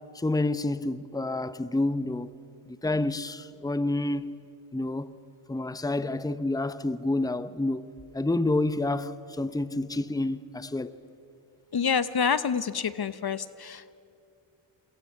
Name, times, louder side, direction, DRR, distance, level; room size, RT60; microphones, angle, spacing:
voice 1, 0.1-2.3 2.7-4.3 4.7-5.2 5.5-7.9 8.1-11.0, left 2 dB, 10° left, 0.9 m, -28 dB
voice 2, 11.7-13.9, left 6 dB, 50° left, 1.0 m, -27 dB
28.5 x 22.5 x 7.3 m
cardioid pair, 50°, 49 cm